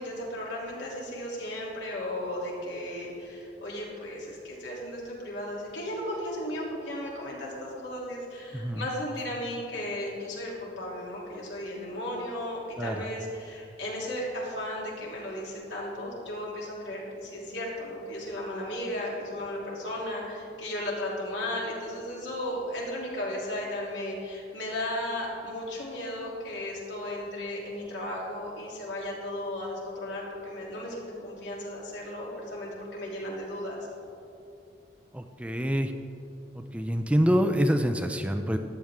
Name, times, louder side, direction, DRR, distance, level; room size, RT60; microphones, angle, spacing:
voice 1, 0.0-33.8, left 1 dB, 80° left, -4 dB, 2.9 m, -35 dB
voice 2, 35.1-35.9 36.6-38.6, equal, 5° right, 6 dB, 0.4 m, -26 dB
14.0 x 10.5 x 3.6 m, 2.6 s
head